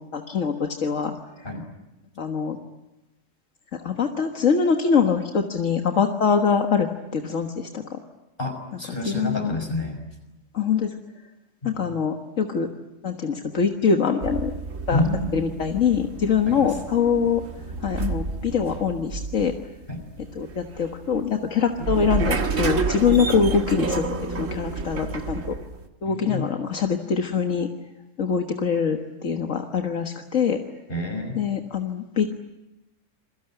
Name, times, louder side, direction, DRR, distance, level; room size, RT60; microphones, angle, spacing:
voice 1, 0.1-1.5 2.2-2.6 3.7-8.0 9.0-9.6 10.5-10.9 11.6-12.7 13.0-14.5 14.9-15.0 15.3-17.4 17.7-19.5 20.2-25.6 26.0-27.7 28.2-30.6 31.3-32.3, left 6 dB, 80° left, 4 dB, 1.9 m, -24 dB
voice 2, 8.4-10.0 11.6-11.8 14.9-15.2 16.5-16.7 19.9-20.0 26.1-26.5 30.9-31.4, left 2 dB, 45° left, 5 dB, 6.1 m, -28 dB
elevator inside, 14.2-25.9, right 4 dB, 80° right, 2.0 m, -30 dB
28.5 x 22.0 x 9.0 m, 0.99 s
omnidirectional pair, 1.3 m